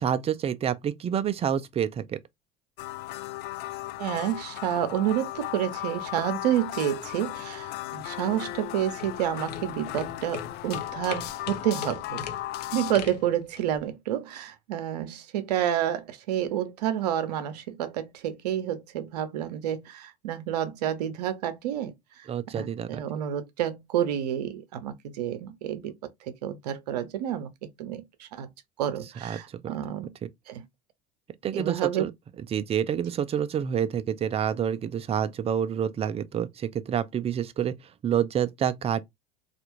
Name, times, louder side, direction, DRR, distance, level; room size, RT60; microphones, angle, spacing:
voice 1, 0.0-2.2 22.3-23.0 29.2-29.4 29.6-29.7 30.2-30.3 31.4-32.1 32.5-37.7 38.0-39.0, right 9 dB, 30° right, 0.5 m, -28 dB
sound 1, 2.8-12.9, left 15 dB, 55° left, 0.5 m, -36 dB
voice 2, 4.0-12.3 12.7-21.9 22.5-25.9 26.3-28.5 28.8-30.1 30.5-30.6 31.5-32.0, right 11 dB, 80° right, 0.7 m, -29 dB
sound 2, 8.5-13.8, left 7 dB, 90° left, 0.8 m, -41 dB
3.3 x 2.5 x 3.0 m
hypercardioid pair, 80°, 20 cm